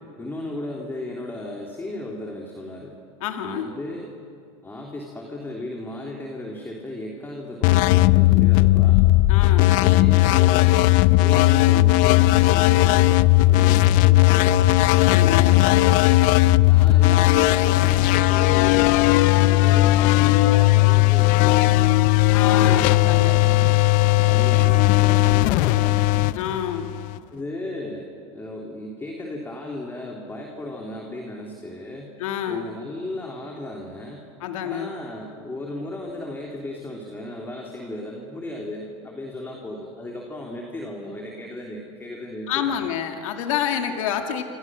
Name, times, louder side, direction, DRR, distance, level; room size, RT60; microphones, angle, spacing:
voice 1, 0.2-2.9 3.4-4.1 4.6-9.1 9.5-10.8 11.2-14.7 15.1-16.3 16.7-23.8 24.2-26.0 27.3-32.1 32.5-34.2 34.6-42.8, left 1 dB, 10° left, 0 dB, 3.2 m, -35 dB
voice 2, 3.2-3.7 9.3-9.7 14.9-15.6 22.3-23.4 26.3-26.9 32.2-32.7 34.4-34.9 42.5-44.4, left 9 dB, 75° left, 5 dB, 2.3 m, -28 dB
sound 1, 7.6-27.2, left 17 dB, 55° left, 0.6 m, -17 dB
27.0 x 25.5 x 6.3 m, 2.4 s
supercardioid pair, 115°, 17 cm